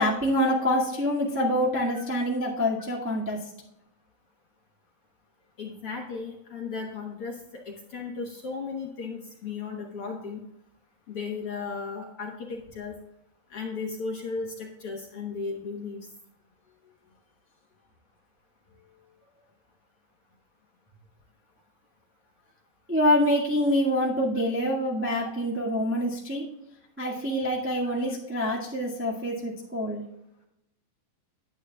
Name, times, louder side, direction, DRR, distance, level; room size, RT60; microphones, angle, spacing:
voice 1, 0.0-3.4 22.9-26.4 27.0-30.0, equal, 15° right, -5 dB, 0.4 m, -26 dB
voice 2, 5.6-10.5 11.1-12.9 13.5-16.1 27.8-27.9, left 4 dB, 60° left, -1 dB, 1.6 m, -35 dB
10.5 x 9.4 x 2.3 m, 0.82 s
omnidirectional pair, 4.1 m